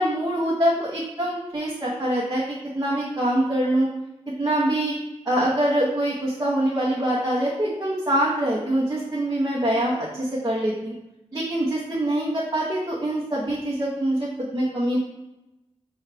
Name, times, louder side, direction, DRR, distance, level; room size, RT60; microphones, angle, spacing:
voice 1, 0.0-2.4 2.7-3.9 4.4-5.0 5.2-10.9 11.3-15.0, right 1 dB, 30° right, -6 dB, 0.8 m, -24 dB
5.6 x 2.4 x 3.3 m, 0.95 s
wide cardioid pair, 80°, 12 cm